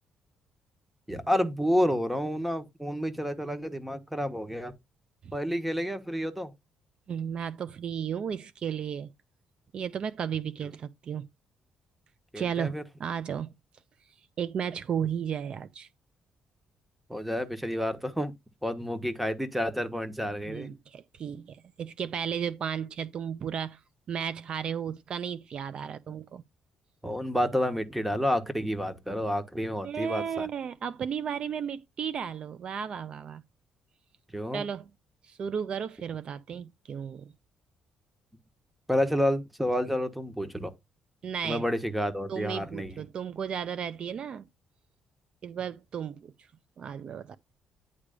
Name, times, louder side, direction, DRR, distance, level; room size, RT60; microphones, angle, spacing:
voice 1, 1.1-4.7 5.3-6.5 12.3-12.8 17.1-18.3 18.6-20.7 27.0-30.5 34.3-34.6 38.9-40.7 41.4-42.9, equal, 5° right, 1.4 m, -29 dB
voice 2, 7.1-9.1 9.7-11.3 12.4-13.5 14.4-15.9 20.5-23.8 24.1-26.4 29.8-33.4 34.5-34.9 35.2-37.3 41.2-41.6 42.3-44.5 45.4-46.3 46.8-47.4, right 8 dB, 55° right, 0.5 m, -34 dB
9.9 x 3.3 x 5.1 m
cardioid pair, 95°, 2 cm